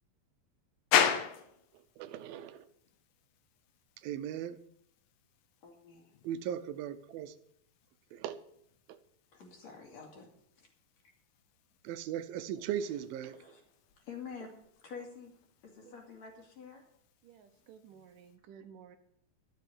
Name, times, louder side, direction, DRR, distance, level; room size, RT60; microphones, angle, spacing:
sound 1, 0.9-18.4, left 9 dB, 80° left, 2.8 m, -40 dB
voice 1, 2.0-2.7 4.0-4.6 6.2-7.3 8.1-8.4 8.9-9.0 11.8-13.6, right 10 dB, 90° right, 12 dB, 2.6 m, -38 dB
voice 2, 5.6-6.2 9.3-10.3 10.6-10.7 13.2-13.6 14.0-14.5 14.8-15.3 15.6-16.8 17.9-18.0, left 6 dB, 50° left, 1 dB, 3.5 m, -48 dB
voice 3, 17.2-19.0, right 7 dB, 75° right, 8 dB, 2.4 m, -54 dB
11.5 x 7.8 x 8.8 m, 0.72 s
omnidirectional pair, 4.1 m